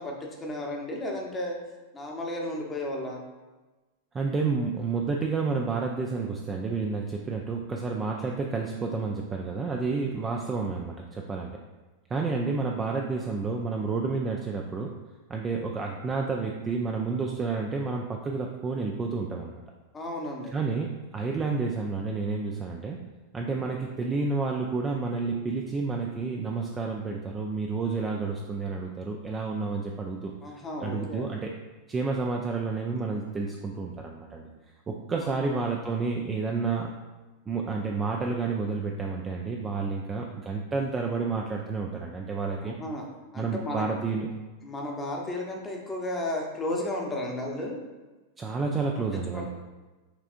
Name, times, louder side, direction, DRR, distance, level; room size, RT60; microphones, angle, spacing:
voice 1, 0.0-1.6 1.9-3.2 19.9-20.5 30.4-31.3 35.2-35.6 42.6-43.1 43.3-43.9 44.6-47.8 49.3-49.5, left 1 dB, 20° left, 0 dB, 0.8 m, -33 dB
voice 2, 4.1-11.5 12.1-14.9 15.3-19.6 20.5-23.0 23.3-30.6 30.8-31.5 31.9-34.5 34.9-36.9 37.5-42.7 43.4-44.3 48.4-49.5, right 4 dB, 20° right, 1 dB, 0.4 m, -30 dB
6.0 x 3.4 x 2.5 m, 1.2 s
figure-of-eight pair, 90°, 0 cm